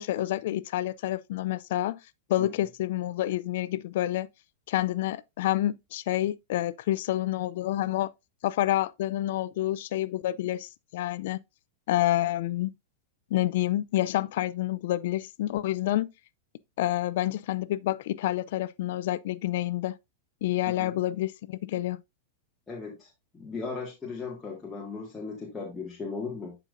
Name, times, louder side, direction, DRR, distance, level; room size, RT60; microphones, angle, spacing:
voice 1, 0.0-2.0 2.3-4.3 4.7-8.1 8.4-11.4 11.9-12.7 13.3-16.1 16.8-20.0 20.4-22.0, left 14 dB, 65° left, 0.3 m, -28 dB
voice 2, 20.7-21.0 22.7-26.6, left 4 dB, 15° left, 1.7 m, -37 dB
10.0 x 5.3 x 2.5 m
hypercardioid pair, 125°, 0 cm